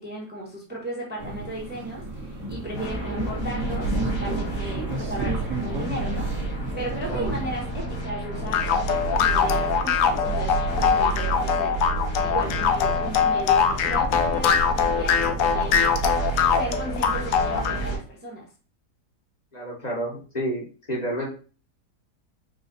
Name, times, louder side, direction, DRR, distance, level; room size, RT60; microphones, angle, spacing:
voice 1, 0.0-11.9 12.2-16.0 16.4-18.5, right 1 dB, 5° right, -4 dB, 1.0 m, -35 dB
sound 1, 1.2-7.7, right 1 dB, 50° right, 1.3 m, -33 dB
sound 2, 2.7-18.0, right 3 dB, 85° left, 2.3 m, -30 dB
sound 3, 8.5-17.8, left 7 dB, 65° left, 0.8 m, -22 dB
voice 2, 19.5-21.3, right 1 dB, 25° left, -4 dB, 1.3 m, -30 dB
5.0 x 2.5 x 4.0 m, 0.38 s
omnidirectional pair, 1.8 m